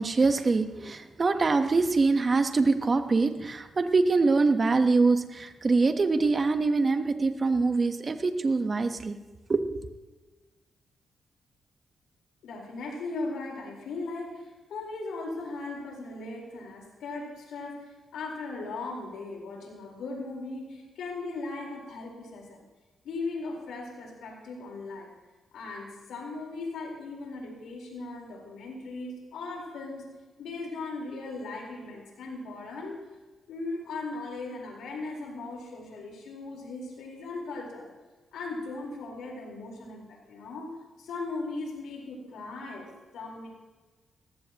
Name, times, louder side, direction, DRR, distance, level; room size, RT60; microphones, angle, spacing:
voice 1, 0.0-9.2 9.5-9.6, right 3 dB, 40° right, 8 dB, 1.1 m, -24 dB
voice 2, 12.4-22.6 23.0-25.1 25.5-30.0 30.4-33.0 33.5-37.9 38.3-42.9 43.1-43.5, left 3 dB, 90° left, -1 dB, 4.3 m, -38 dB
19.0 x 15.0 x 3.0 m, 1.3 s
cardioid pair, 80°, 0 cm